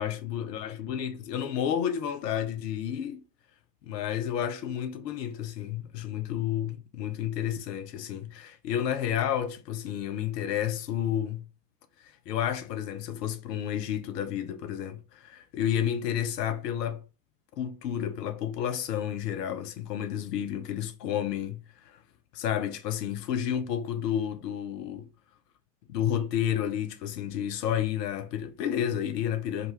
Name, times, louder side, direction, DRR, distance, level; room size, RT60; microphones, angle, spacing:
voice 1, 0.0-3.2 3.8-11.5 12.0-17.0 17.6-22.0 22.3-25.1 25.9-29.7, left 10 dB, 75° left, 0.7 m, -31 dB
4.2 x 2.8 x 3.2 m
hypercardioid pair, 65°, 48 cm